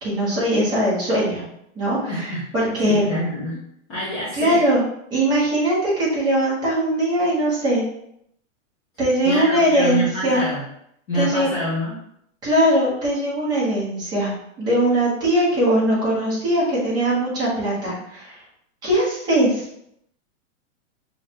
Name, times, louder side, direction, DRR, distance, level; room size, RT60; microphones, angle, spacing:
voice 1, 0.0-1.4 1.7-3.1 4.3-4.8 5.1-7.8 9.0-10.5 11.1-11.5 12.4-14.3 14.6-18.4 18.8-19.7, right 1 dB, 10° right, -8 dB, 1.1 m, -20 dB
voice 2, 2.1-2.4 2.8-3.6 3.9-4.6 9.2-10.6 11.1-12.0, equal, 15° left, -10 dB, 0.6 m, -26 dB
6.4 x 2.5 x 3.0 m, 0.74 s
supercardioid pair, 175°, 39 cm